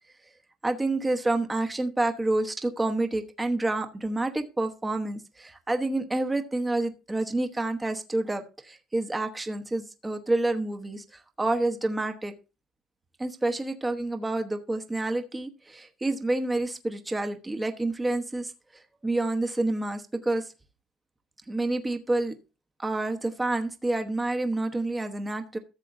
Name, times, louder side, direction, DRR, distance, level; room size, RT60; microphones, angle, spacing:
voice 1, 0.6-12.3 13.2-20.5 21.5-22.3 22.8-25.6, right 2 dB, 10° right, 5 dB, 1.1 m, -28 dB
14.5 x 7.4 x 2.6 m, 0.30 s
cardioid pair, 140°, 0 cm